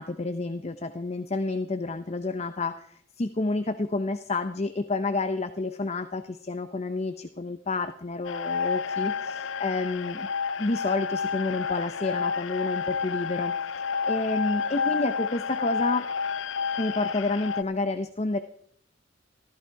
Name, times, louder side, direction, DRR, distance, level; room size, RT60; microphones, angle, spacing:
voice 1, 0.0-10.3 10.6-13.5 13.8-16.1 16.8-18.4, left 3 dB, 35° left, 10 dB, 0.6 m, -29 dB
sound 1, 8.2-17.6, left 5 dB, 80° left, 0.6 m, -30 dB
15.0 x 14.0 x 4.7 m, 0.63 s
head